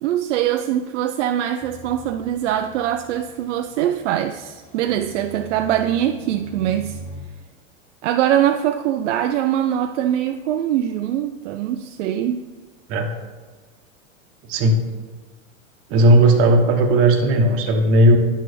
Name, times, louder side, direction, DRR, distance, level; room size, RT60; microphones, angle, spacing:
voice 1, 0.0-7.0 8.0-12.4, right 11 dB, 65° right, 0.5 m, -22 dB
sound 1, 1.6-7.2, equal, 15° left, 1.9 m, -42 dB
voice 2, 14.5-14.9 15.9-18.2, right 1 dB, 35° right, 1.0 m, -15 dB
9.9 x 6.2 x 3.3 m
hypercardioid pair, 130°, 40 cm